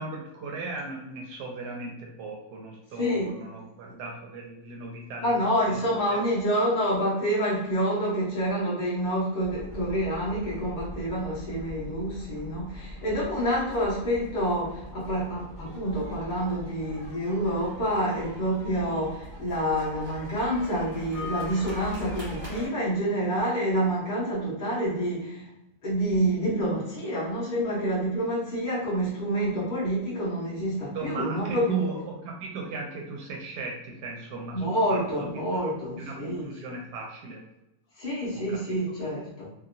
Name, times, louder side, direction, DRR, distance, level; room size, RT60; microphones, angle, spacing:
voice 1, 0.0-5.3 5.7-5.8 6.1-6.2 30.9-34.6 34.9-35.6 36.0-37.4 38.3-38.8, right 3 dB, 75° right, 0 dB, 1.1 m, -36 dB
voice 2, 3.0-3.3 5.2-25.5 25.8-31.8 34.5-36.5 38.0-39.5, equal, 40° left, -9 dB, 0.7 m, -28 dB
sound 1, 9.4-22.7, left 1 dB, 35° right, 0.9 m, -41 dB
2.9 x 2.6 x 2.5 m, 0.90 s
omnidirectional pair, 2.0 m